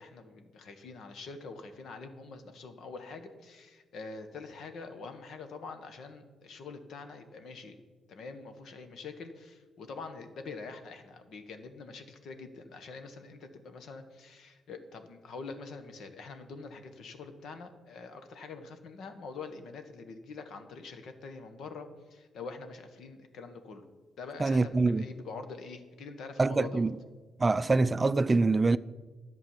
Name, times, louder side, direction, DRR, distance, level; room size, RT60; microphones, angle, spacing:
voice 1, 0.0-7.8 8.1-23.9 24.2-26.9, left 4 dB, 70° left, 1.5 m, -45 dB
voice 2, 24.4-25.1 26.4-27.0 27.4-28.8, right 3 dB, 25° right, 0.4 m, -25 dB
11.5 x 7.6 x 7.3 m
cardioid pair, 90°, 0 cm